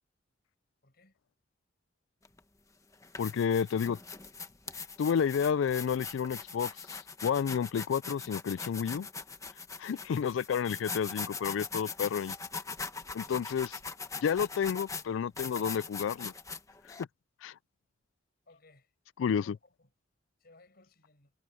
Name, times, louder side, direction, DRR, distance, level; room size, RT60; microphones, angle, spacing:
voice 1, 0.8-1.2 13.1-13.4 18.5-18.9 19.3-19.9 20.4-21.3, left 2 dB, 55° left, 5.8 m, -61 dB
sound 1, 2.2-2.4 2.9-17.0, left 4 dB, 15° left, 1.2 m, -41 dB
voice 2, 3.2-4.0 5.0-6.7 7.2-9.1 9.8-12.4 13.2-13.7 14.2-16.3 17.4-17.5 19.2-19.6, left 7 dB, 80° left, 0.3 m, -30 dB
head